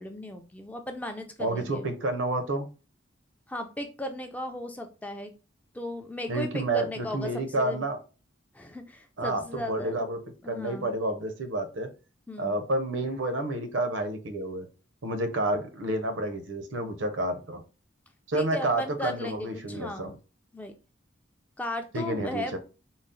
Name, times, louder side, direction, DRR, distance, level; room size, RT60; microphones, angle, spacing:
voice 1, 0.0-1.9 3.5-5.3 5.7-7.8 8.5-10.0 10.4-10.9 12.3-12.6 18.3-20.1 20.5-20.7 21.6-22.6, left 1 dB, 10° left, 0.3 m, -36 dB
voice 2, 1.4-2.7 6.3-8.0 9.2-10.2 10.5-11.9 12.4-14.7 15.0-17.6 18.3-20.1 21.9-22.6, right 2 dB, 75° right, 0.7 m, -29 dB
3.9 x 2.0 x 3.6 m
head